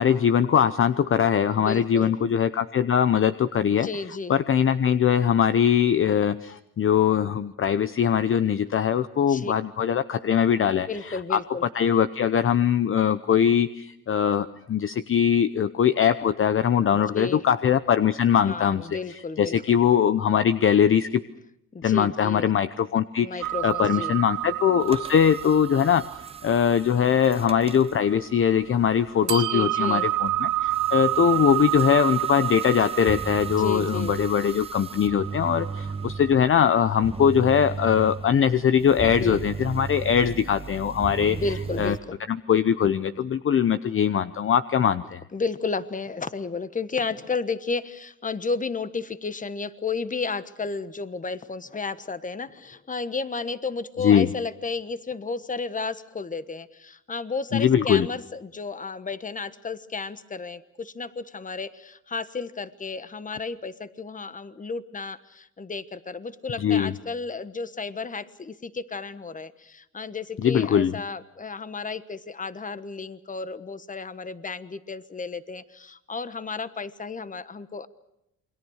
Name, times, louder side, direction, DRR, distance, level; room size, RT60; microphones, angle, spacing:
voice 1, 0.0-3.9 4.3-11.4 11.7-18.8 19.4-21.2 21.8-26.1 26.4-41.4 41.8-41.9 42.3-45.2 54.0-54.3 57.5-58.1 66.6-66.9 70.4-70.9, left 8 dB, 45° left, 12 dB, 0.8 m, -21 dB
voice 2, 1.6-2.1 3.6-4.3 9.3-9.5 10.7-11.7 16.9-17.4 18.3-19.6 21.7-22.5 23.2-24.2 29.2-30.1 33.6-34.1 39.2-39.4 41.3-42.1 45.3-77.9, left 4 dB, 25° left, 13 dB, 1.3 m, -33 dB
sound 1, 23.4-28.6 29.3-36.8, right 15 dB, 80° right, 0.8 m, -30 dB
sound 2, 24.8-42.0, right 4 dB, 20° right, 0.9 m, -37 dB
28.5 x 22.0 x 6.5 m, 0.82 s
cardioid pair, 90°, 30 cm